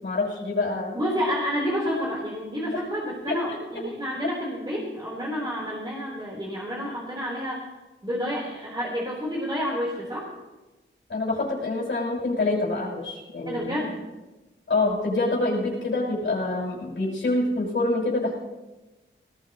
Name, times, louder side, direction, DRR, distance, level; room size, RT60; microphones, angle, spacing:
voice 1, 0.0-0.9 2.7-2.8 3.3-3.6 11.1-13.7 14.7-18.4, left 2 dB, 65° left, -6 dB, 6.0 m, -26 dB
voice 2, 0.9-7.6 8.0-10.3 13.5-14.0, equal, 20° right, -5 dB, 4.3 m, -29 dB
19.5 x 18.5 x 3.2 m, 1.1 s
wide cardioid pair, 75°, 21 cm